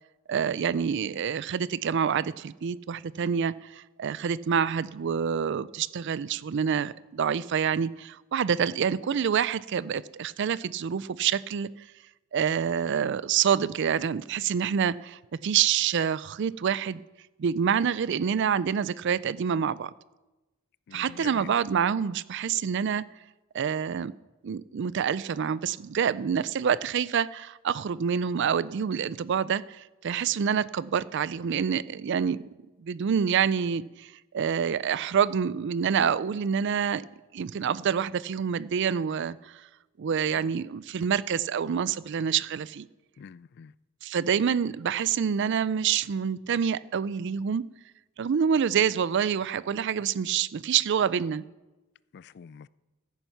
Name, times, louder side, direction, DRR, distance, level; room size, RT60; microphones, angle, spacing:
voice 1, 0.3-11.7 12.3-17.0 17.4-19.9 20.9-23.0 23.5-24.1 24.4-32.4 32.8-34.1 34.3-37.1 37.3-39.5 40.0-42.9 44.0-47.6 48.2-51.4, right 7 dB, 60° right, 0.4 m, -27 dB
voice 2, 20.9-21.5 40.3-40.5 43.2-43.7 52.1-52.7, left 7 dB, 55° left, 0.3 m, -46 dB
15.5 x 9.1 x 5.8 m
head